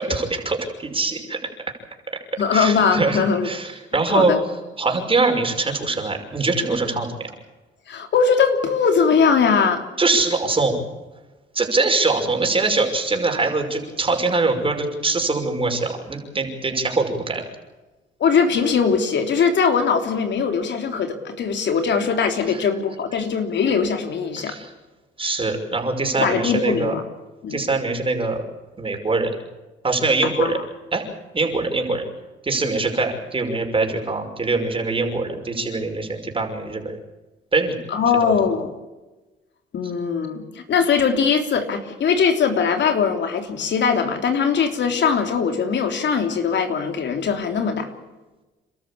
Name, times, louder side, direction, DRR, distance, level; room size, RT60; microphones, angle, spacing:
voice 1, 0.0-1.4 2.5-4.3 4.8-7.3 10.0-10.8 11.5-17.4 22.5-22.6 24.4-24.7 25.2-26.9 27.5-28.4 28.8-29.3 29.8-30.6 30.9-31.0 31.3-32.0 32.4-36.9 37.5-37.8 38.2-38.5, right 3 dB, 25° right, 3 dB, 5.8 m, -23 dB
voice 2, 2.4-3.5 4.1-4.4 7.9-9.8 18.2-24.6 26.2-27.0 27.4-27.6 30.4-30.6 37.9-38.7 39.7-47.9, left 6 dB, 65° left, 5 dB, 3.4 m, -20 dB
29.5 x 13.0 x 8.6 m, 1.1 s
cardioid pair, 90°, 20 cm